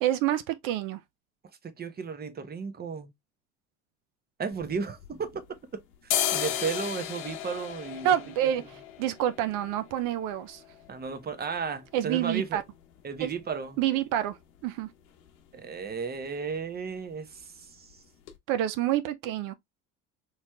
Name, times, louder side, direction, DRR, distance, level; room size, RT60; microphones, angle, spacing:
voice 1, 0.0-1.0 8.0-10.6 11.9-12.6 13.2-13.3 13.8-14.4 14.6-14.9 18.5-19.5, right 12 dB, 60° right, 0.5 m, -28 dB
voice 2, 1.6-3.1 4.4-5.4 5.7-8.1 8.4-8.5 10.9-12.6 13.0-13.8 15.5-17.9, right 5 dB, 25° right, 0.9 m, -34 dB
sound 1, 4.5-5.6 5.9-13.6 13.9-14.0 14.3-14.9 15.2-15.4 15.7-15.9 16.2-16.9 17.2-17.4 17.9-18.0 18.3-18.4, left 11 dB, 75° left, 0.9 m, -35 dB
4.1 x 3.2 x 2.3 m
hypercardioid pair, 75°, 35 cm